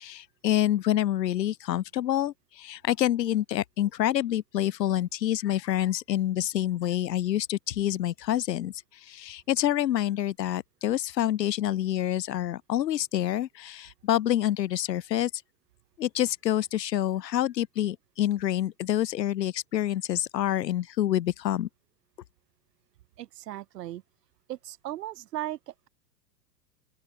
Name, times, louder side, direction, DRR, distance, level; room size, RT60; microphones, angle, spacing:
voice 1, 0.0-8.7 9.0-15.3 16.0-21.7, left 12 dB, 80° left, 1.9 m, -27 dB
voice 2, 23.2-24.0 24.5-25.9, right 14 dB, 75° right, 7.7 m, -37 dB
open air
hypercardioid pair, 115°, 49 cm